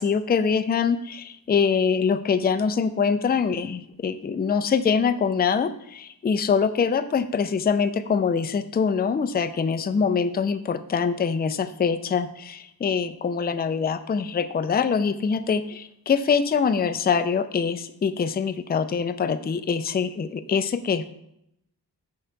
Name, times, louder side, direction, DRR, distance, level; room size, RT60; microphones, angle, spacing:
voice 1, 0.0-21.1, left 6 dB, 25° left, 10 dB, 0.4 m, -24 dB
6.5 x 3.8 x 4.6 m, 0.77 s
wide cardioid pair, 85°, 42 cm